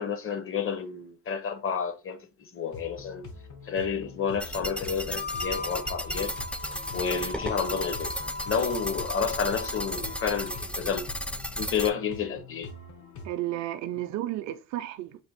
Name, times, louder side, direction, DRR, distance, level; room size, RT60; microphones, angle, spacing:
voice 1, 0.0-3.2 3.7-6.3 6.9-8.1 8.4-11.0 11.6-12.7, left 6 dB, 45° left, 0.8 m, -30 dB
sound 1, 2.7-13.3, left 3 dB, 70° left, 1.2 m, -45 dB
sound 2, 4.4-11.9, equal, 5° left, 0.3 m, -35 dB
Harmonica, 5.0-10.7, left 3 dB, 85° left, 1.8 m, -39 dB
voice 2, 13.2-15.2, right 14 dB, 65° right, 0.5 m, -32 dB
3.4 x 2.6 x 4.2 m
cardioid pair, 90°, 30 cm